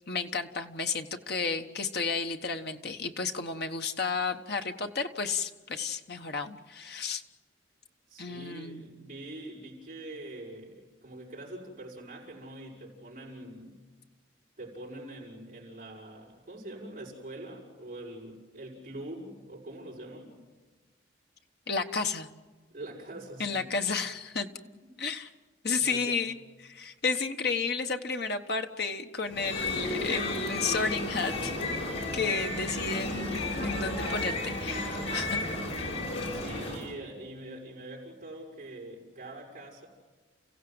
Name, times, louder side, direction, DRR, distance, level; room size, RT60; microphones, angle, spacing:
voice 1, 0.1-7.2 8.2-8.9 21.7-22.3 23.4-24.5 25.0-25.3 25.6-31.9 32.1-35.5 36.2-36.3, left 4 dB, 55° left, 6 dB, 1.2 m, -32 dB
voice 2, 8.1-13.8 14.6-20.3 22.7-23.7 24.6-24.9 25.7-26.2 36.3-39.9, right 1 dB, 40° right, -6 dB, 6.4 m, -44 dB
sound 1, 29.3-36.9, left 2 dB, 75° left, 5.4 m, -33 dB
30.0 x 16.0 x 7.9 m, 1.3 s
head